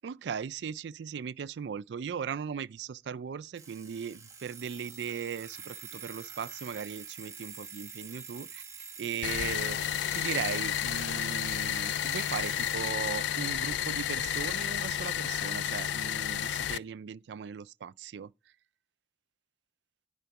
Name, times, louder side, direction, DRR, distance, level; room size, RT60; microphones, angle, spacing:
voice 1, 0.0-8.6 9.0-18.3, right 7 dB, 75° right, 0.3 m, -38 dB
Alarm, 3.5-12.8, right 6 dB, 15° right, 1.2 m, -46 dB
sound 1, 9.2-16.8, left 10 dB, 80° left, 0.3 m, -31 dB
10.5 x 3.7 x 6.9 m
head